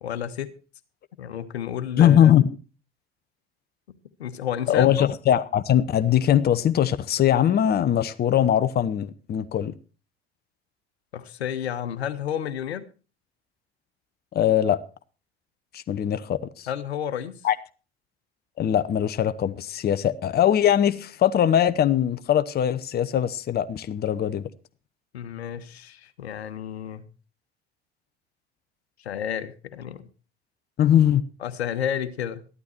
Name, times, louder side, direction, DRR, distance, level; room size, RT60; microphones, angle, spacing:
voice 1, 0.0-0.5 1.2-2.3 3.9-5.1 11.1-12.8 16.7-17.4 25.1-27.0 29.0-30.0 31.4-32.5, left 9 dB, 75° left, 1.2 m, -31 dB
voice 2, 2.0-2.5 4.7-9.7 14.3-14.8 15.7-16.7 17.4-17.6 18.6-24.4 30.8-31.2, left 10 dB, 30° left, 0.9 m, -21 dB
14.0 x 12.0 x 4.4 m
figure-of-eight pair, 65°, 32 cm